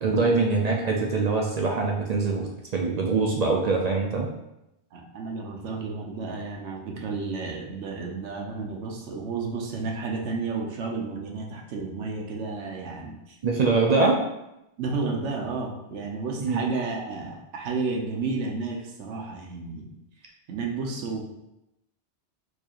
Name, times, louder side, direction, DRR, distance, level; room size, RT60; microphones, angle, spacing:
voice 1, 0.0-4.3 13.4-14.2 16.4-16.6, right 3 dB, 60° right, 0 dB, 0.4 m, -23 dB
voice 2, 4.9-13.4 14.0-14.1 14.8-19.9 20.5-21.2, right 4 dB, 80° right, 0 dB, 1.0 m, -32 dB
4.5 x 2.4 x 2.9 m, 0.89 s
omnidirectional pair, 1.2 m